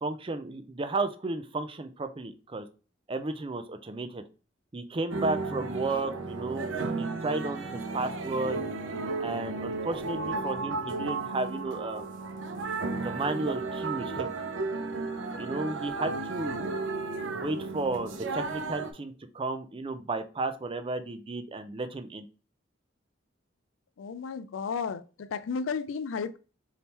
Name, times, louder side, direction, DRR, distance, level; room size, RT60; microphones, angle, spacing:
voice 1, 0.0-2.7 3.1-4.2 4.7-6.7 7.0-8.6 9.2-12.1 12.9-14.3 15.4-16.7 17.3-22.3, right 2 dB, 30° right, 0.5 m, -33 dB
sound 1, 5.1-18.9, right 3 dB, 85° right, 0.7 m, -34 dB
voice 2, 24.0-26.4, left 5 dB, 90° left, 0.4 m, -33 dB
3.6 x 2.8 x 4.2 m
head